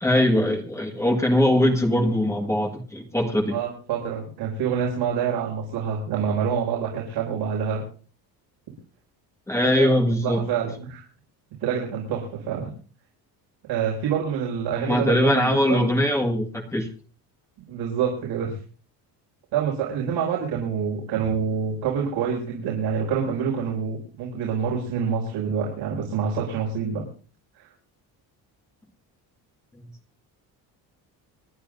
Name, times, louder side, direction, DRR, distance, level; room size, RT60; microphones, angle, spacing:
voice 1, 0.0-3.6 9.5-10.4 14.7-16.9, left 1 dB, 5° left, 2 dB, 1.7 m, -21 dB
voice 2, 3.5-7.8 9.6-10.0 10.2-11.0 11.6-12.7 13.6-15.8 17.7-18.5 19.5-27.0 27.6-27.7, right 7 dB, 85° right, -2 dB, 6.0 m, -27 dB
28.5 x 11.5 x 2.6 m, 0.38 s
cardioid pair, 165°, 40 cm